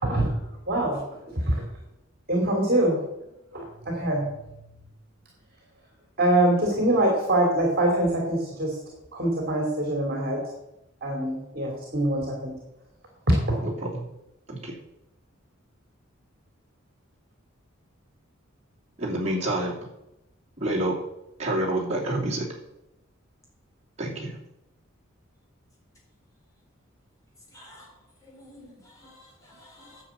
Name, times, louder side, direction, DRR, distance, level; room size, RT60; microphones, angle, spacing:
voice 1, 0.0-0.4 0.7-1.0 1.3-1.6 2.3-3.0 3.5-4.2 6.2-8.7 9.1-10.4 11.0-12.5 13.5-13.6, right 1 dB, 45° right, 2.7 m, -24 dB
voice 2, 13.6-14.0 14.5-14.7 19.0-19.7 20.6-21.0 21.4-22.5 24.0-24.3, right 1 dB, 30° right, 2.9 m, -28 dB
voice 3, 27.5-27.9 28.2-30.0, left 1 dB, 15° left, 4.2 m, -51 dB
9.9 x 7.1 x 8.1 m
head